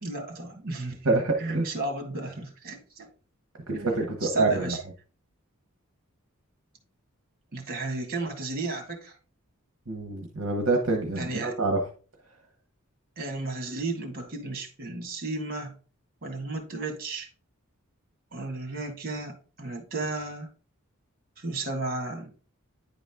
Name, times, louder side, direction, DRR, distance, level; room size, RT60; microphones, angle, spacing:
voice 1, 0.0-3.1 3.7-4.8 7.5-9.1 11.1-11.6 13.2-15.7 16.2-17.3 18.3-20.5 21.4-22.3, right 2 dB, 45° right, 1.9 m, -34 dB
voice 2, 1.0-1.7 3.8-4.7 9.9-11.8, right 3 dB, 65° right, 1.1 m, -26 dB
10.0 x 4.0 x 3.6 m
head